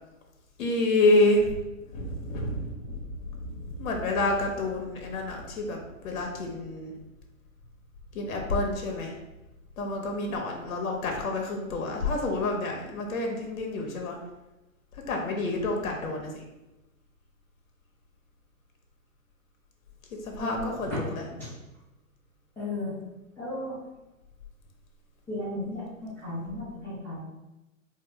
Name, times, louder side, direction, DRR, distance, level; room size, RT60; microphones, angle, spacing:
voice 1, 0.6-1.5 1.9-6.9 8.1-9.1 9.8-14.2 15.1-16.4 20.2-21.2, left 2 dB, 65° left, 1 dB, 1.0 m, -28 dB
voice 2, 20.4-20.7 21.4-21.5 22.6-23.0 23.4-23.7 25.3-27.2, left 2 dB, 5° left, -12 dB, 0.4 m, -35 dB
4.0 x 2.1 x 3.1 m, 1.0 s
hypercardioid pair, 130°, 42 cm